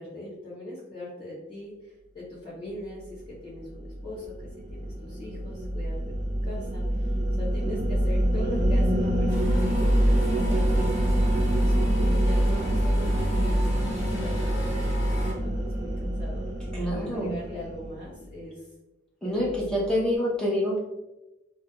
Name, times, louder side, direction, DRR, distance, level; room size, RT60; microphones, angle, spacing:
voice 1, 0.0-5.9 6.4-10.8 11.5-16.5 16.9-18.7 19.2-19.9, left 1 dB, 25° left, -13 dB, 0.9 m, -40 dB
sound 1, 3.8-18.2, right 1 dB, 40° right, 0.5 m, -25 dB
sound 2, 9.3-15.3, left 1 dB, 70° left, 1.1 m, -37 dB
voice 2, 16.7-17.4 19.2-20.8, equal, 5° left, -6 dB, 0.5 m, -26 dB
2.2 x 2.2 x 2.8 m, 0.99 s
head